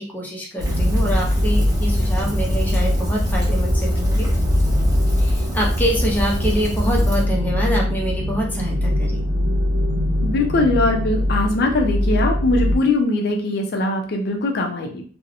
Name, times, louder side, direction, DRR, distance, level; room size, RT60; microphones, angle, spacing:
voice 1, 0.0-4.3 5.2-9.2, equal, 10° left, -2 dB, 0.6 m, -25 dB
Rain, 0.6-7.2, equal, 20° right, 1.1 m, -24 dB
sound 1, 0.6-12.8, left 1 dB, 75° right, 0.5 m, -22 dB
voice 2, 10.2-15.0, left 2 dB, 60° left, 2 dB, 0.4 m, -21 dB
2.7 x 2.0 x 2.5 m, 0.42 s
head